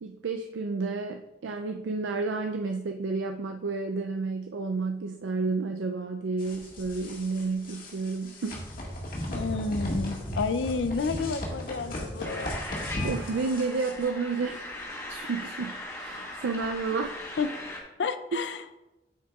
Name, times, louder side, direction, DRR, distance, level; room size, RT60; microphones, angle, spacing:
voice 1, 0.0-8.6 13.0-17.2, right 4 dB, 90° right, 5 dB, 0.4 m, -31 dB
sound 1, 6.4-14.0, equal, 50° left, 1.7 m, -36 dB
voice 2, 9.3-12.6 17.4-17.5 18.0-18.6, left 4 dB, 70° left, 11 dB, 0.5 m, -30 dB
sound 2, 12.2-17.8, left 2 dB, 15° left, 1.2 m, -39 dB
9.2 x 7.3 x 2.4 m, 1.0 s
head